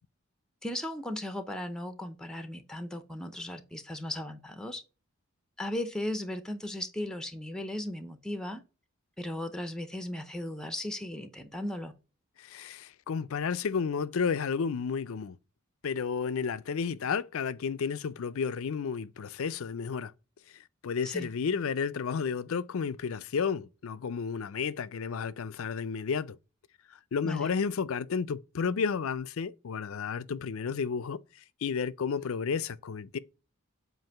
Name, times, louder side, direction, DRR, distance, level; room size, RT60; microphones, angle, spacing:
voice 1, 0.6-4.8 5.6-8.6 9.2-11.9 21.0-21.3 27.2-27.5, left 1 dB, 5° left, 0.6 m, -36 dB
voice 2, 12.4-15.4 15.8-20.1 20.8-26.4 27.1-31.2 31.6-33.2, left 6 dB, 70° left, 0.4 m, -32 dB
7.7 x 2.6 x 5.6 m
head